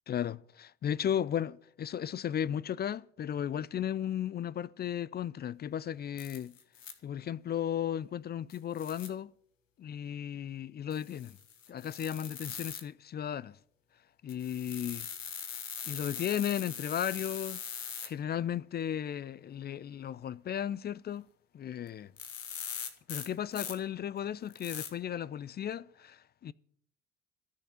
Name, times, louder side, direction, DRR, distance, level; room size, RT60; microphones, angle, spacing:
voice 1, 0.1-0.4 0.8-6.5 7.0-9.3 9.8-11.4 11.7-13.5 14.2-15.1 15.9-17.6 18.0-21.2 21.5-22.1 23.1-26.5, left 9 dB, 25° left, 0.4 m, -35 dB
sound 1, 6.2-6.9 8.5-9.1 10.9-12.8 14.3-18.1 21.9-22.0 22.2-23.7 24.5-24.9, left 7 dB, 85° left, 1.2 m, -41 dB
13.5 x 6.6 x 9.4 m
figure-of-eight pair, 55°, 38 cm